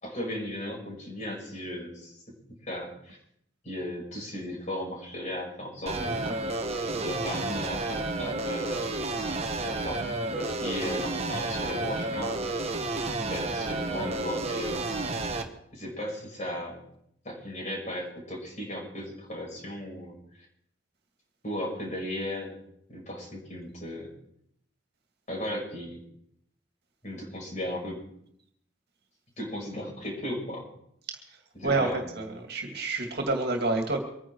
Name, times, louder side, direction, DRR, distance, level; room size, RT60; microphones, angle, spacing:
voice 1, 0.0-2.4 2.6-3.2 3.6-6.5 6.8-9.2 9.6-10.0 10.3-12.7 13.3-14.9 15.7-16.8 17.2-20.1 21.4-22.6 22.9-24.1 25.3-26.0 27.0-28.0 29.4-30.6 31.6-32.1, left 1 dB, 35° left, -1 dB, 5.7 m, -36 dB
sound 1, 5.9-15.4, right 2 dB, 30° right, 1.3 m, -31 dB
voice 2, 32.1-34.0, right 3 dB, 50° right, 3 dB, 2.4 m, -28 dB
24.5 x 10.0 x 4.7 m, 0.72 s
head